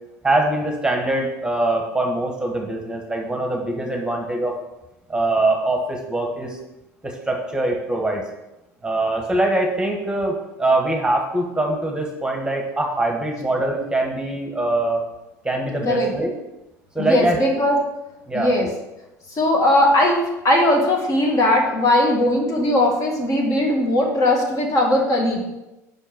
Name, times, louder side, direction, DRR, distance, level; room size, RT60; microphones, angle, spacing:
voice 1, 0.2-4.6 5.1-6.6 7.0-8.2 8.8-15.0 15.4-16.3 16.9-17.4 18.3-18.5, right 2 dB, 10° right, 1 dB, 1.2 m, -23 dB
voice 2, 17.0-17.8 18.3-18.7 19.3-25.4, left 1 dB, 40° left, 0 dB, 1.8 m, -19 dB
5.5 x 4.5 x 5.8 m, 0.97 s
hypercardioid pair, 80°, 8 cm